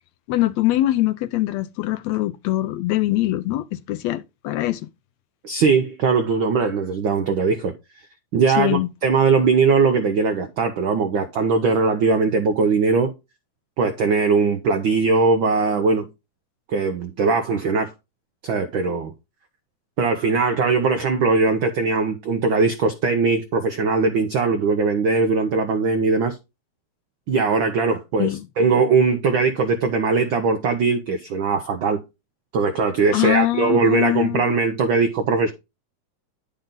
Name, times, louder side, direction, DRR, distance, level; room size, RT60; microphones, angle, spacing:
voice 1, 0.3-4.9 8.6-8.9 28.2-28.5 33.1-34.6, left 16 dB, 80° left, 1.7 m, -23 dB
voice 2, 5.4-7.7 8.3-13.1 13.8-16.1 16.7-17.9 18.4-19.1 20.0-26.4 27.3-32.0 32.5-35.5, right 4 dB, 75° right, 1.1 m, -20 dB
10.5 x 5.4 x 3.8 m
omnidirectional pair, 3.3 m